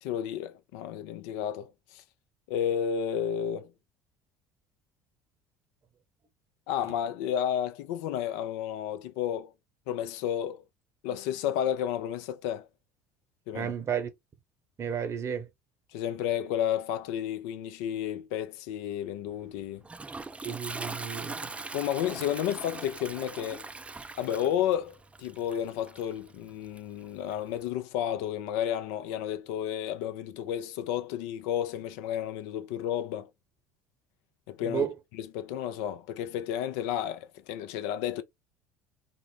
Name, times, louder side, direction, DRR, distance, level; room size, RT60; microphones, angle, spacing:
voice 1, 0.0-2.0 2.5-3.7 6.7-9.5 9.9-10.6 11.0-12.7 13.5-13.7 15.9-19.8 21.7-23.6 24.2-33.3 34.5-34.9 35.1-38.2, left 10 dB, 70° left, 0.4 m, -32 dB
voice 2, 13.5-14.1 14.8-15.5 20.4-21.4 34.6-34.9, right 7 dB, 35° right, 0.8 m, -32 dB
Toilet flush, 19.3-27.7, right 3 dB, 15° right, 0.4 m, -42 dB
3.9 x 2.0 x 3.3 m
hypercardioid pair, 65°, 8 cm